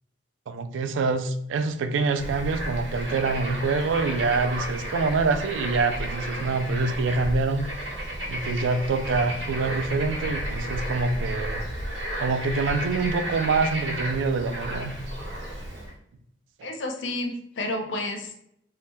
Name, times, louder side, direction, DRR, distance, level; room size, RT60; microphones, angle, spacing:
voice 1, 0.5-7.7 8.3-11.6 12.2-14.9, right 4 dB, 85° right, 9 dB, 0.3 m, -25 dB
Bird / Frog, 2.1-15.9, equal, 65° right, 0.8 m, -32 dB
voice 2, 16.6-18.3, left 2 dB, 75° left, 4 dB, 0.5 m, -30 dB
2.7 x 2.1 x 3.3 m, 0.73 s
head